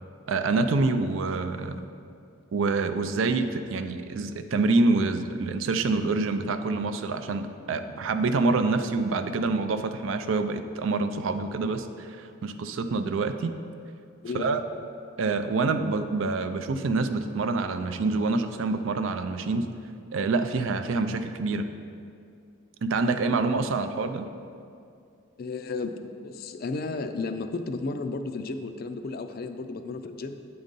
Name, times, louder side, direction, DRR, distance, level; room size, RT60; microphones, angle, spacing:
voice 1, 0.3-1.8 2.5-13.6 14.3-14.6 15.2-19.7 20.1-21.7 22.8-24.3, right 3 dB, 70° right, 8 dB, 0.4 m, -26 dB
voice 2, 14.2-14.6 25.4-25.9 26.2-30.4, left 3 dB, 45° left, 8 dB, 0.4 m, -33 dB
8.2 x 3.9 x 5.3 m, 2.4 s
head